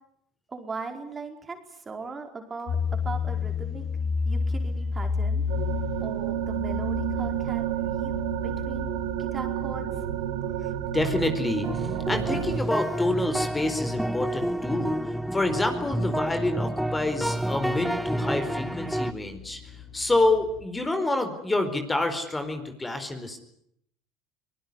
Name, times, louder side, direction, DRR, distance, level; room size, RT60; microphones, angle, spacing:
voice 1, 0.5-3.8 4.2-5.4 6.0-8.9 9.2-9.9, right 4 dB, 25° right, 5 dB, 4.8 m, -39 dB
sound 1, 2.7-20.6, left 5 dB, 55° left, 6.1 m, -34 dB
sound 2, 5.5-12.6, right 12 dB, 75° right, 2.4 m, -30 dB
voice 2, 10.9-15.0 15.3-19.6 19.9-23.4, left 2 dB, 15° left, 8 dB, 4.5 m, -27 dB
sound 3, 11.6-19.1, right 1 dB, 5° right, 1.0 m, -29 dB
24.5 x 19.5 x 9.8 m, 0.73 s
hypercardioid pair, 80°, 0 cm